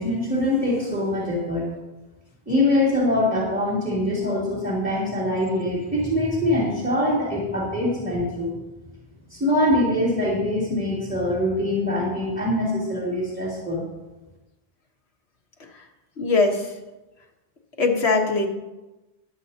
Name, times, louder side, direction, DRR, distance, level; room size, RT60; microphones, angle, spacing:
voice 1, 0.0-1.7 2.5-8.6 9.3-13.9, left 1 dB, 10° right, -6 dB, 3.0 m, -23 dB
voice 2, 16.2-16.7 17.8-18.5, left 3 dB, 90° left, 2 dB, 1.7 m, -20 dB
20.5 x 8.0 x 2.9 m, 1.1 s
omnidirectional pair, 1.1 m